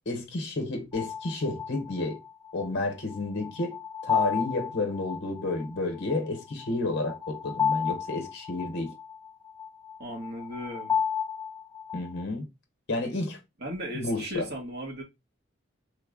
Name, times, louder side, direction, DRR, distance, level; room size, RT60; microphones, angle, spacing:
voice 1, 0.1-2.2 2.5-8.9 11.9-12.5 12.9-13.4 13.9-14.5, left 2 dB, 55° left, 0.8 m, -31 dB
sound 1, 0.9-12.2, left 7 dB, 10° left, 0.5 m, -33 dB
voice 2, 10.0-11.0 13.6-15.0, equal, 50° right, 1.1 m, -36 dB
3.2 x 2.1 x 3.6 m
head